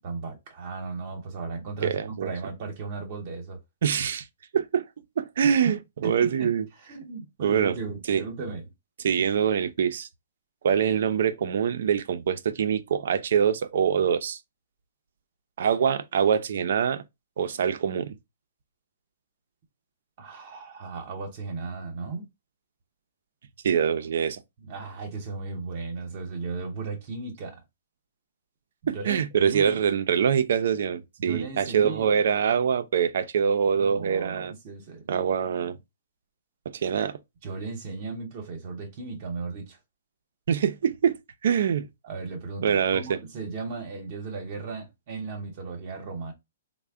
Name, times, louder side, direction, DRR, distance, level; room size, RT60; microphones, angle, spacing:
voice 1, 0.0-3.6 5.4-5.8 6.0-8.6 20.2-22.2 24.6-27.6 28.8-29.8 31.2-32.1 33.7-35.1 37.4-39.8 42.0-46.3, right 4 dB, 40° right, 0.8 m, -36 dB
voice 2, 1.8-2.3 3.8-4.3 4.5-4.9 5.2-6.7 7.4-7.8 8.1-8.2 9.0-10.1 10.6-14.4 15.6-17.0 17.4-18.1 23.6-24.4 28.9-34.5 35.1-35.8 36.7-37.2 40.5-41.2 41.4-41.9 42.6-43.2, right 7 dB, 60° right, 0.4 m, -24 dB
3.3 x 2.1 x 3.5 m
hypercardioid pair, 160°, 0 cm